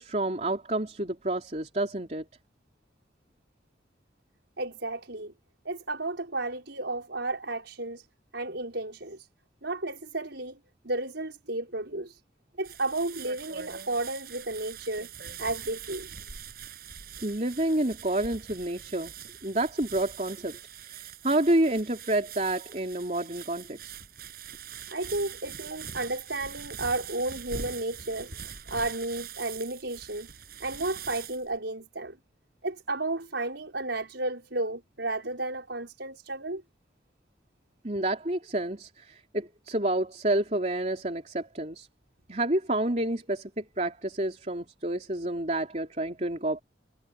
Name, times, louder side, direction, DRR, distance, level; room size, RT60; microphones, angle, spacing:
voice 1, 0.0-2.2 17.2-19.1 19.4-20.6 20.8-23.9 37.8-41.9 42.3-46.6, right 1 dB, 40° right, 3.6 m, -29 dB
voice 2, 4.6-5.3 5.7-8.1 8.3-9.3 9.6-10.6 10.8-12.2 12.6-15.1 15.4-16.1 24.9-30.3 30.6-32.2 32.6-36.6, right 2 dB, 80° right, 5.2 m, -33 dB
sound 1, 12.6-31.6, right 7 dB, 55° right, 7.5 m, -43 dB
head